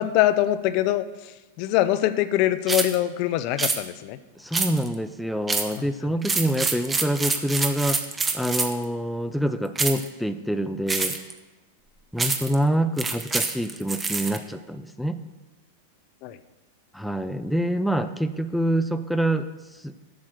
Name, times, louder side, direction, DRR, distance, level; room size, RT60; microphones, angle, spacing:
voice 1, 0.0-4.2 5.8-5.9 16.2-16.4, left 13 dB, 50° left, 13 dB, 0.6 m, -23 dB
sound 1, 2.7-3.0 3.6-3.8 4.5-5.0 5.5-5.8 6.2-8.8 9.8-10.1 10.9-11.3 12.2-12.6 13.0-14.4, right 4 dB, 15° right, 1.0 m, -26 dB
voice 2, 4.4-8.0 8.3-11.2 12.1-15.2 16.9-19.5 19.7-19.9, right 1 dB, ahead, 9 dB, 0.5 m, -26 dB
8.4 x 6.3 x 7.6 m, 1.2 s
hypercardioid pair, 125°, 0 cm